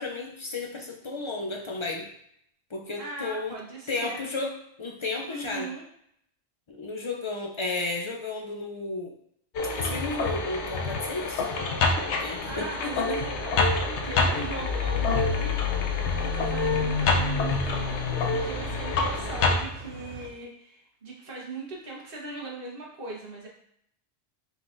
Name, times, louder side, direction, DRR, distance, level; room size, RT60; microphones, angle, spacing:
voice 1, 0.0-2.1 2.7-3.6 3.9-5.7 6.7-9.1 9.8-11.4 11.9-13.2, left 3 dB, 50° left, 1 dB, 0.3 m, -33 dB
voice 2, 3.0-4.2 5.3-5.8 12.5-13.4 13.8-23.5, right 3 dB, 55° right, -3 dB, 1.2 m, -39 dB
sound 1, 9.5-19.6, left 3 dB, 80° left, 0.9 m, -26 dB
sound 2, 14.2-20.3, right 4 dB, 80° right, 1.0 m, -43 dB
4.6 x 3.9 x 2.5 m, 0.71 s
omnidirectional pair, 1.2 m